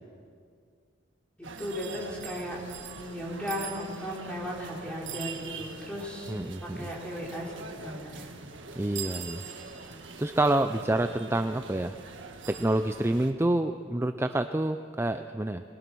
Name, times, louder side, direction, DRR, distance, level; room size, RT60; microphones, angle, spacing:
voice 1, 1.4-2.6 2.9-6.3 6.6-7.5 7.8-8.3 9.9-10.0, equal, 5° left, -3 dB, 4.2 m, -36 dB
sound 1, 1.4-13.3, right 5 dB, 75° right, 1.6 m, -43 dB
voice 2, 6.3-6.9 8.7-9.4 10.2-12.0 12.5-15.6, right 1 dB, 15° right, 8 dB, 0.4 m, -28 dB
22.0 x 20.5 x 6.2 m, 2.2 s
head